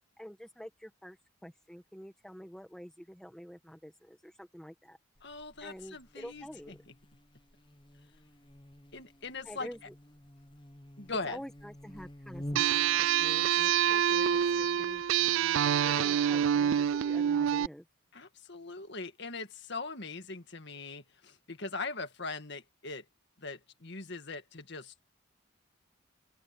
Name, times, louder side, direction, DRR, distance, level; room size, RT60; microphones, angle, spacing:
voice 1, 0.2-5.0 5.6-6.8 9.4-9.9 11.2-15.0 15.8-17.8, equal, 5° left, 1.5 m, -47 dB
Buzz, 5.1-12.9, equal, 20° left, 1.1 m, -48 dB
voice 2, 5.2-6.9 8.9-9.7 11.0-11.4 18.1-23.1 23.4-25.0, left 3 dB, 50° left, 1.9 m, -41 dB
sound 1, 12.6-17.7, right 9 dB, 65° right, 0.3 m, -26 dB
open air
head